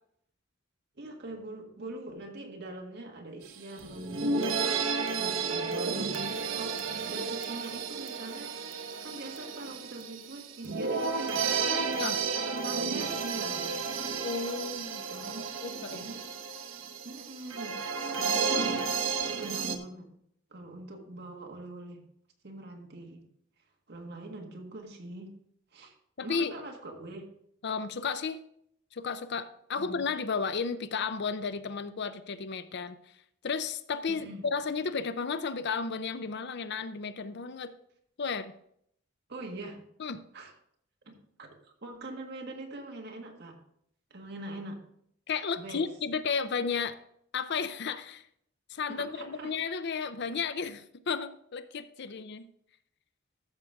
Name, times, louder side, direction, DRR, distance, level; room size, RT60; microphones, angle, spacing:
voice 1, 1.0-6.8 7.1-8.6 9.0-11.9 12.5-13.7 15.1-15.5 15.9-16.3 17.0-17.8 18.2-20.1 20.5-22.1 22.4-23.2 23.9-25.3 25.7-25.9 26.2-27.3 29.8-30.1 34.1-34.5 39.3-39.8 40.3-40.5 41.1-43.6 44.1-44.8 45.6-45.9 48.9-49.6, right 2 dB, 55° right, 2 dB, 1.7 m, -43 dB
sound 1, 3.5-3.6 3.8-19.8, right 5 dB, 80° right, 0.9 m, -32 dB
voice 2, 14.2-16.1 26.2-26.5 27.6-28.4 28.9-33.0 33.4-37.7 38.2-38.5 40.0-40.2 45.3-47.0 47.3-48.2 48.7-52.5, left 5 dB, 60° left, 12 dB, 0.5 m, -33 dB
13.0 x 6.6 x 3.5 m, 0.70 s
head